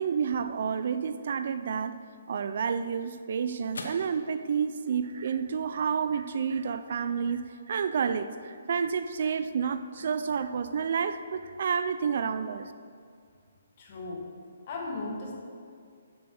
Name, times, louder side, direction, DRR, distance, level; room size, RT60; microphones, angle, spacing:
voice 1, 0.0-2.0 2.3-12.7, right 6 dB, 60° right, 11 dB, 0.4 m, -30 dB
sound 1, 2.5-11.0, left 2 dB, 85° left, 0.9 m, -51 dB
voice 2, 13.8-14.3 14.7-15.4, left 3 dB, 40° left, -1 dB, 1.6 m, -37 dB
7.0 x 5.9 x 6.4 m, 2.2 s
hypercardioid pair, 155°, 0 cm